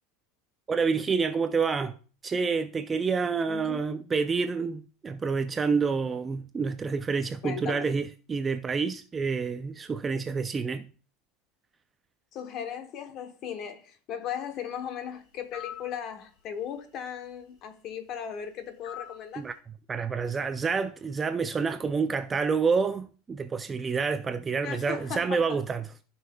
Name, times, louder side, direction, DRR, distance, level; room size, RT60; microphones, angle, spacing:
voice 1, 0.7-2.0 2.2-10.9 19.4-19.5 19.9-25.9, right 5 dB, 15° right, 0.3 m, -28 dB
voice 2, 3.3-3.8 7.4-7.9 12.3-19.4 24.6-25.6, left 8 dB, 35° left, 0.9 m, -37 dB
sound 1, 15.5-15.9 18.8-19.3, left 10 dB, 50° left, 1.7 m, -41 dB
14.5 x 5.6 x 2.3 m
supercardioid pair, 170°, 0 cm